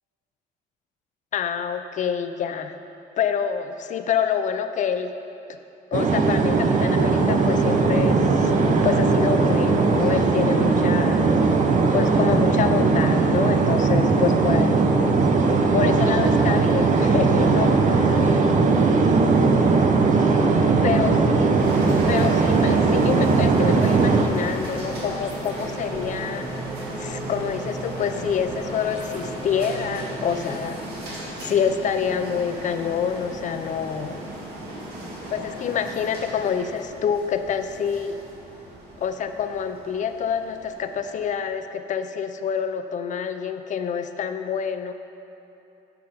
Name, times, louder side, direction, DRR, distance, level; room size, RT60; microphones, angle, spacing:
voice 1, 1.3-2.8 3.2-5.1 5.9-11.4 11.9-15.0 15.7-18.1 20.8-21.5 22.1-26.5 27.0-30.8 31.4-34.2 35.3-38.2 39.0-44.9, left 7 dB, 45° left, 9 dB, 0.5 m, -27 dB
sound 1, 5.9-24.3, right 4 dB, 50° right, 0.8 m, -19 dB
sound 2, 21.4-30.2, right 3 dB, 15° right, 2.2 m, -39 dB
sound 3, 21.6-41.3, right 1 dB, 70° right, 2.3 m, -35 dB
10.5 x 5.8 x 5.0 m, 2.8 s
cardioid pair, 110°, 17 cm